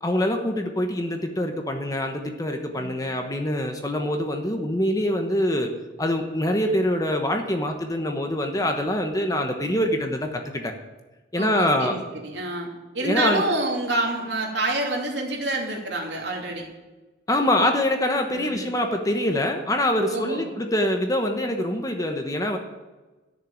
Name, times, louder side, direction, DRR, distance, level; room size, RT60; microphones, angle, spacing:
voice 1, 0.0-5.7 6.0-10.7 11.3-12.0 13.0-13.4 17.3-22.6, left 1 dB, 20° left, 4 dB, 1.1 m, -24 dB
voice 2, 11.3-12.7 12.9-16.6 18.3-18.7 20.1-20.5, right 2 dB, 70° right, -1 dB, 2.9 m, -28 dB
12.0 x 6.7 x 8.7 m, 1.2 s
head